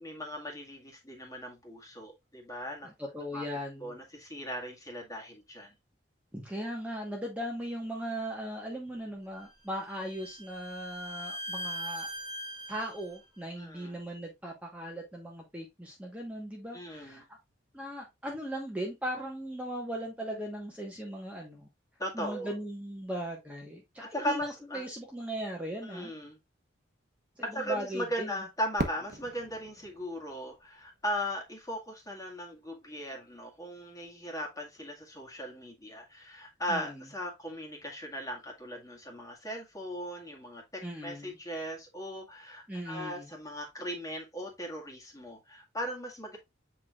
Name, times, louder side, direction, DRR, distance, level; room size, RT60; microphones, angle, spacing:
voice 1, 0.0-2.9 3.3-3.4 3.8-5.7 13.6-14.0 16.7-17.2 22.0-22.5 24.0-24.8 25.8-26.4 27.4-40.6 41.0-46.4, equal, 15° left, 1.9 m, -38 dB
voice 2, 2.8-3.9 6.3-12.1 12.7-17.4 17.7-21.7 22.1-26.1 27.4-28.4 36.7-37.0 40.8-41.4 42.7-43.3, equal, 5° right, 1.3 m, -38 dB
Bowed string instrument, 9.4-13.2, equal, 25° right, 2.0 m, -41 dB
Fireworks, 28.8-31.6, right 1 dB, 45° right, 1.2 m, -39 dB
8.4 x 4.7 x 2.4 m
head